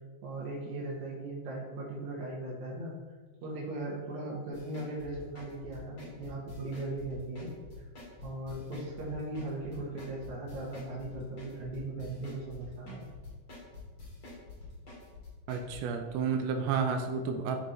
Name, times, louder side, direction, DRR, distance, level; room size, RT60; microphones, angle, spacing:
voice 1, 0.2-2.9 3.4-7.5 8.2-13.0, right 2 dB, 65° right, -5 dB, 2.4 m, -38 dB
sound 1, 4.5-15.8, left 3 dB, 40° left, 2.8 m, -47 dB
voice 2, 15.5-17.6, right 6 dB, 80° right, 4 dB, 1.5 m, -31 dB
12.0 x 4.4 x 3.2 m, 1.4 s
omnidirectional pair, 3.8 m